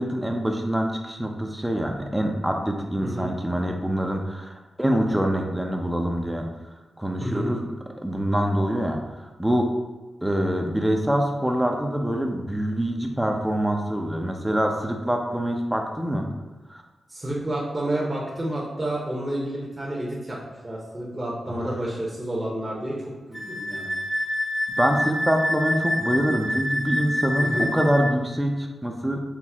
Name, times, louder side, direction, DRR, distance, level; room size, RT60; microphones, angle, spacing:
voice 1, 0.0-6.5 7.0-7.6 8.0-9.7 10.2-16.3 16.7-16.8 24.8-29.2, equal, 10° right, 3 dB, 0.6 m, -25 dB
voice 2, 7.2-7.5 17.1-20.4 20.6-23.0 23.3-23.9 27.4-27.7, right 1 dB, 25° right, -5 dB, 1.0 m, -29 dB
Wind instrument woodwind instrument, 23.3-28.1, left 1 dB, 20° left, 0.9 m, -27 dB
5.9 x 2.0 x 3.5 m, 1.2 s
cardioid pair, 55°, 0 cm